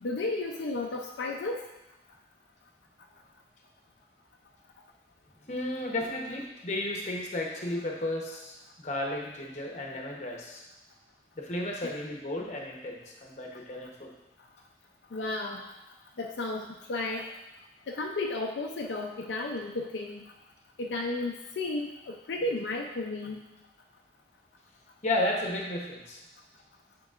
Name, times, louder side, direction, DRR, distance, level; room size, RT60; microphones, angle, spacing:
voice 1, 0.0-1.6 11.8-11.9 15.1-15.6 16.2-17.3 17.9-20.2 20.8-23.5, left 2 dB, 75° left, 0 dB, 0.5 m, -33 dB
voice 2, 5.5-10.6 11.4-14.1 25.0-26.2, left 1 dB, 40° left, 0 dB, 0.9 m, -33 dB
8.9 x 4.5 x 2.5 m, 0.95 s
head